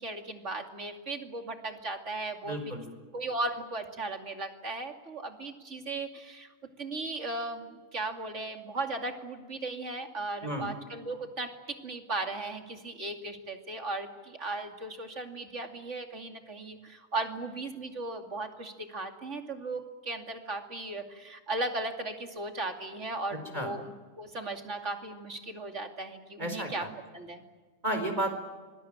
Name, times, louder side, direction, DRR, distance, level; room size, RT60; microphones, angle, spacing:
voice 1, 0.0-2.6 3.1-6.5 6.8-26.8 27.1-27.4, right 2 dB, 65° right, 5 dB, 2.9 m, -37 dB
voice 2, 2.4-2.9 10.4-10.7 23.5-23.7 26.4-26.9 27.8-28.3, right 1 dB, 35° right, 6 dB, 4.6 m, -32 dB
26.0 x 21.5 x 8.9 m, 1.4 s
omnidirectional pair, 1.3 m